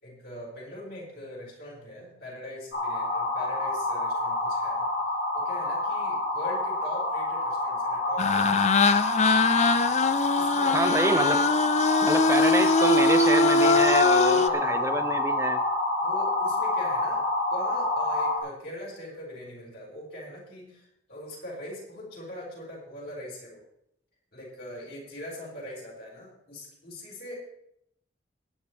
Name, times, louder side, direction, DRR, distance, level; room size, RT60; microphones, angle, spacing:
voice 1, 0.0-4.9 5.3-9.0 10.4-11.1 13.3-13.8 14.3-15.2 16.0-17.2 17.5-23.6 24.3-27.3, left 1 dB, 55° left, -5 dB, 5.9 m, -42 dB
sound 1, 2.7-18.4, left 2 dB, 85° left, 4.6 m, -27 dB
sound 2, 8.2-14.5, left 3 dB, 35° left, 0.4 m, -22 dB
voice 2, 10.7-11.4 12.0-15.6, right 2 dB, 15° right, 7 dB, 0.5 m, -27 dB
17.5 x 9.9 x 3.4 m, 0.76 s
head